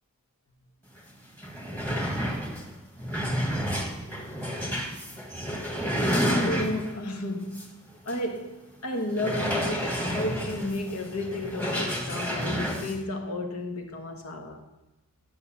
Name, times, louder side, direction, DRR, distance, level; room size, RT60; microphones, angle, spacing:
sound 1, 1.0-1.1 1.3-7.0 7.5-7.7 8.1-8.2 9.1-13.0, equal, 10° left, 1.3 m, -30 dB
voice 1, 6.1-7.7 8.0-14.6, left 1 dB, 85° left, 1.4 m, -32 dB
11.0 x 6.7 x 5.6 m
head